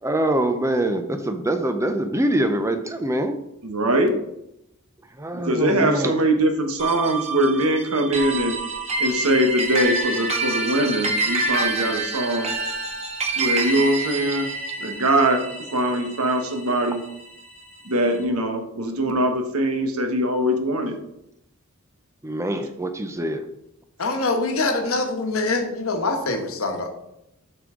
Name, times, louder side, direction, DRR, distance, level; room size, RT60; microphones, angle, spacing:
voice 1, 0.0-3.4 5.2-6.2 22.2-23.4, right 1 dB, 15° right, 7 dB, 0.6 m, -24 dB
voice 2, 3.6-4.2 5.3-8.6 9.0-12.5 13.3-14.5 14.8-15.4 15.7-17.0 17.8-21.0, right 1 dB, 75° right, 5 dB, 1.1 m, -22 dB
sound 1, 6.8-17.4, right 2 dB, 30° right, 1.3 m, -27 dB
voice 3, 24.0-26.9, left 3 dB, 65° left, 4 dB, 1.2 m, -24 dB
8.0 x 5.3 x 3.7 m, 0.84 s
head